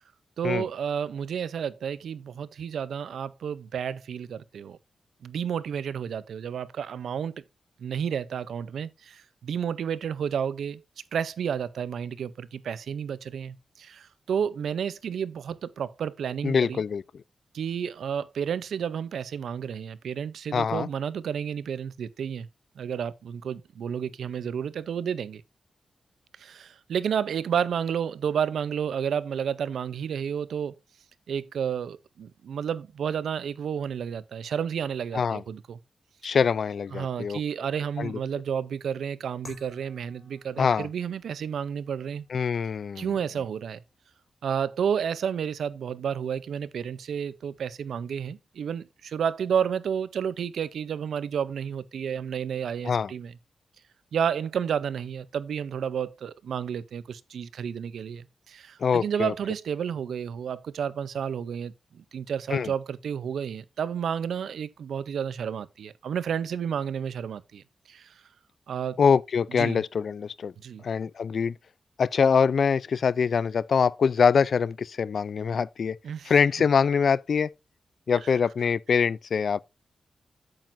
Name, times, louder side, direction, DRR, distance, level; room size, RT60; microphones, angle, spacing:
voice 1, 0.4-4.8 5.2-7.3 7.8-10.8 11.1-16.8 17.5-22.5 22.8-25.4 26.4-30.8 31.3-35.8 36.2-36.4 36.9-42.3 43.0-43.8 44.4-53.3 54.1-68.2 68.7-69.0 69.5-69.8 70.6-70.8 76.0-76.3 78.1-78.3, right 8 dB, 90° right, 0.6 m, -31 dB
voice 2, 16.4-17.0 20.5-20.9 35.1-35.4 36.2-37.4 38.0-38.2 40.6-40.9 42.3-43.1 52.8-53.1 58.8-59.3 62.5-62.7 69.0-70.5 70.8-71.5 72.0-76.0 76.3-77.5 78.1-79.6, left 6 dB, 70° left, 0.4 m, -24 dB
sound 1, 39.4-48.3, left 1 dB, 35° left, 3.4 m, -55 dB
8.7 x 7.7 x 2.6 m
cardioid pair, 70°, 0 cm